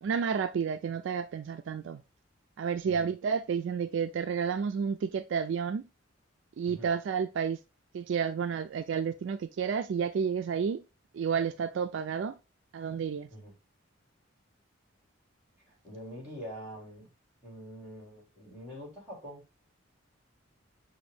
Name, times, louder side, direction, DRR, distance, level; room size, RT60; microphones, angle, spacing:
voice 1, 0.0-2.0 2.6-5.9 6.6-7.6 7.9-10.8 11.1-12.4 12.7-13.3, right 6 dB, 65° right, 0.3 m, -31 dB
voice 2, 15.7-17.1 17.4-19.4, equal, 5° right, 2.8 m, -45 dB
6.2 x 2.6 x 3.2 m
head